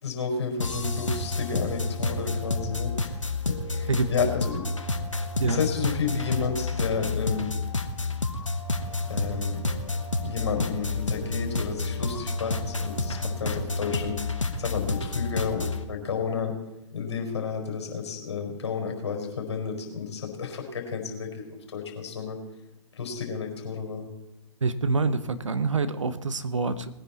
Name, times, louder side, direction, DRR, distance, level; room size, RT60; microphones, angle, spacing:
voice 1, 0.0-3.2 3.5-4.9 5.4-7.5 9.1-9.6 10.2-14.2 14.6-16.5 16.9-22.4 22.9-24.1, left 5 dB, 60° left, 3 dB, 4.7 m, -31 dB
sound 1, 0.6-15.8, left 2 dB, 85° left, 1.3 m, -30 dB
voice 2, 24.6-26.9, right 4 dB, 80° right, 12 dB, 1.1 m, -26 dB
20.0 x 10.0 x 4.2 m, 0.96 s
figure-of-eight pair, 120°, 16 cm